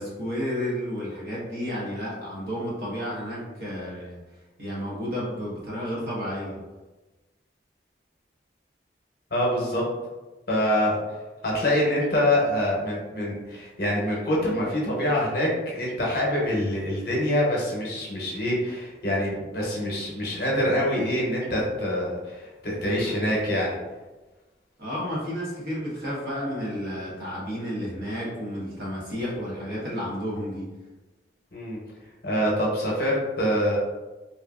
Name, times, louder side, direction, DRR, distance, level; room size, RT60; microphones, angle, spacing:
voice 1, 0.0-4.2 4.6-6.6 24.8-30.7, equal, 55° right, -6 dB, 1.0 m, -31 dB
voice 2, 9.3-9.8 10.5-11.0 11.4-23.7 31.5-31.8 32.2-33.8, left 1 dB, 55° left, -4 dB, 0.8 m, -25 dB
2.8 x 2.5 x 2.3 m, 1.2 s
head